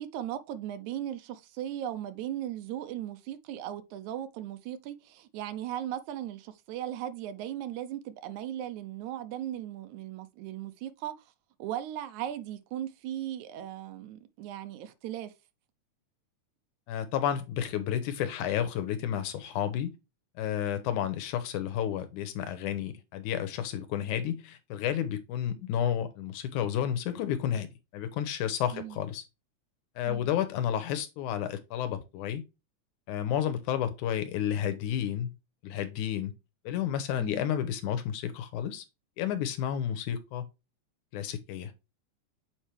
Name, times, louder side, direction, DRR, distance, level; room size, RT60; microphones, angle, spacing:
voice 1, 0.0-11.1 11.6-15.3 28.7-29.0 30.0-30.3 37.2-37.5, right 11 dB, 75° right, 1.9 m, -37 dB
voice 2, 16.9-19.9 20.4-27.7 27.9-29.2 30.0-32.4 33.1-35.3 35.6-36.3 36.7-38.8 39.2-40.5 41.1-41.7, left 10 dB, 80° left, 2.2 m, -31 dB
7.3 x 4.4 x 3.3 m
omnidirectional pair, 3.7 m